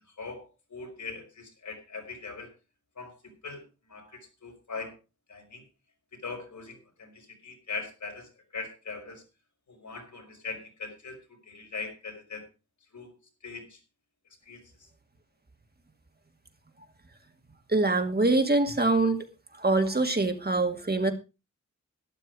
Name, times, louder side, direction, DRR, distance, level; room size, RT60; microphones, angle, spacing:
voice 1, 0.2-2.5 3.0-3.1 3.4-3.6 3.9-5.0 5.3-5.6 6.2-9.2 9.7-11.2 11.4-12.5 12.9-13.1 13.4-13.8 14.5-14.9, left 4 dB, 80° left, 2 dB, 5.4 m, -40 dB
voice 2, 17.7-19.3 19.6-21.1, right 2 dB, 35° right, 6 dB, 2.3 m, -24 dB
12.5 x 12.0 x 4.9 m, 0.30 s
wide cardioid pair, 85°, 29 cm